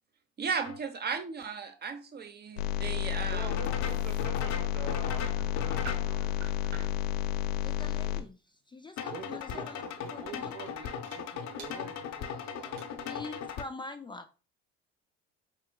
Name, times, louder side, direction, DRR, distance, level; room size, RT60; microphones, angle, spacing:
voice 1, 0.4-3.6, right 5 dB, 35° right, 0.8 m, -35 dB
sound 1, 0.6-0.8 3.5-6.1 9.0-13.6, left 7 dB, 60° left, 0.8 m, -38 dB
sound 2, 2.5-7.1 9.3-9.5 10.0-10.2 10.6-10.7 11.0-11.2 11.6-11.7 12.3-12.4 12.6-12.8, right 4 dB, 80° right, 1.2 m, -49 dB
sound 3, 2.6-8.2, left 10 dB, 85° left, 0.5 m, -31 dB
voice 2, 3.3-6.4 9.0-13.2, right 5 dB, 60° right, 1.0 m, -46 dB
voice 3, 7.6-8.4 8.7-9.8 10.1-10.5 13.1-14.3, left 3 dB, 15° left, 0.4 m, -43 dB
4.4 x 3.8 x 2.2 m
hypercardioid pair, 70°, 31 cm